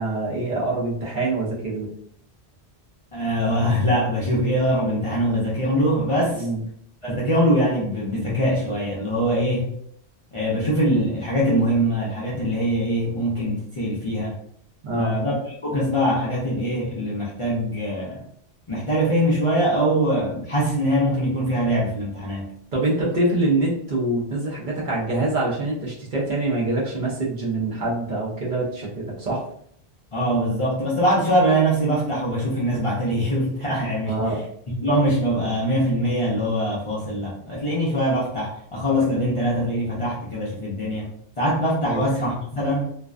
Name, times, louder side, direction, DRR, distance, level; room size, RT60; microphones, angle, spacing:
voice 1, 0.0-1.9 6.4-6.6 14.8-15.2 22.7-29.4 34.1-34.4 41.8-42.0, right 2 dB, 55° right, -5 dB, 0.7 m, -25 dB
voice 2, 3.1-6.4 7.0-9.7 10.3-14.3 15.0-15.4 15.6-18.2 18.7-22.5 30.1-34.2 34.7-41.1 41.4-42.9, equal, 45° left, -7 dB, 0.4 m, -23 dB
2.5 x 2.1 x 2.3 m, 0.66 s
omnidirectional pair, 1.1 m